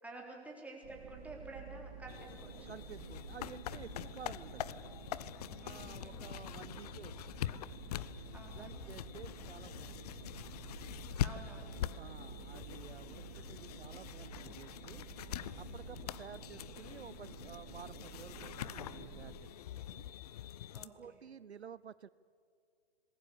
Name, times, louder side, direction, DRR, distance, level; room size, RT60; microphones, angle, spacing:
voice 1, 0.0-2.7 5.6-6.2 8.3-8.9 11.2-11.8 14.1-14.2 20.7-21.2, right 2 dB, 5° right, -1 dB, 3.6 m, -51 dB
sound 1, 0.8-19.3, right 6 dB, 40° right, 3.2 m, -51 dB
sound 2, 2.1-20.9, left 12 dB, 35° left, 0.7 m, -44 dB
voice 2, 2.7-4.9 5.6-7.5 8.6-10.4 12.0-15.0 15.6-20.0 20.8-22.1, right 7 dB, 75° right, 18 dB, 0.6 m, -52 dB
27.0 x 20.5 x 7.1 m, 2.4 s
figure-of-eight pair, 120°, 32 cm